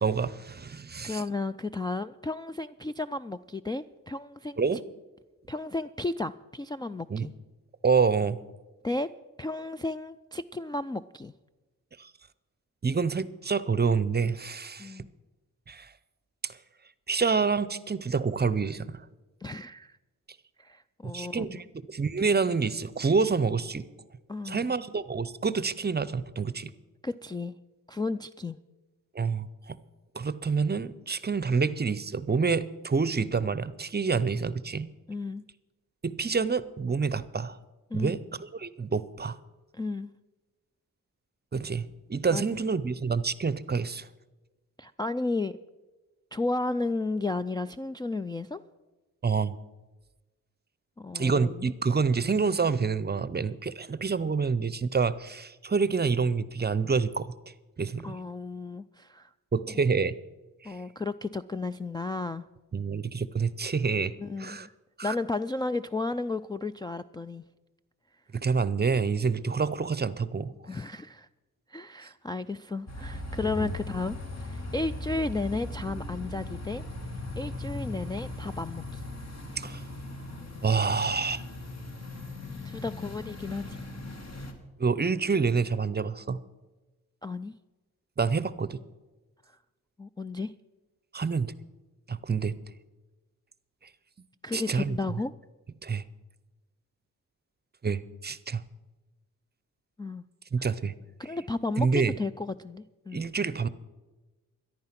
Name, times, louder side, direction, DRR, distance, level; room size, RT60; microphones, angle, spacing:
voice 1, 0.0-1.2 4.6-4.8 7.1-7.3 7.8-8.4 12.0-12.1 12.8-15.0 15.7-15.9 16.4-16.5 17.1-19.0 21.1-23.9 24.4-26.7 29.1-29.8 30.1-34.9 36.0-37.6 37.9-39.4 41.5-44.1 49.2-49.6 51.1-57.3 57.8-58.2 59.5-60.1 60.6-60.8 62.7-64.7 65.0-65.1 68.3-70.5 73.6-73.7 79.6-79.8 80.6-81.4 84.8-86.4 88.2-88.8 91.1-91.5 92.1-92.6 94.5-95.2 95.8-96.0 97.8-98.6 100.5-100.9 101.8-102.2 103.1-103.7, right 5 dB, 30° right, 16 dB, 0.6 m, -27 dB
voice 2, 1.0-4.6 5.5-7.3 8.8-9.1 9.4-11.3 14.8-15.1 19.4-20.0 20.6-21.6 24.3-24.6 27.0-27.5 27.9-28.6 35.1-35.4 37.9-38.1 39.7-40.1 42.3-42.4 44.8-45.6 46.3-48.6 51.0-51.7 58.0-59.3 60.6-62.4 64.2-64.7 65.0-67.4 70.6-71.3 71.7-76.8 77.4-79.0 82.6-83.8 87.2-87.5 89.5-89.6 90.0-90.5 94.4-95.3 100.0-100.2 100.6-100.7 101.2-103.3, left 3 dB, 15° left, 7 dB, 0.3 m, -33 dB
sound 1, 72.9-84.5, left 2 dB, 50° left, 2.1 m, -39 dB
13.5 x 11.0 x 5.9 m, 1.2 s
cardioid pair, 70°, 35 cm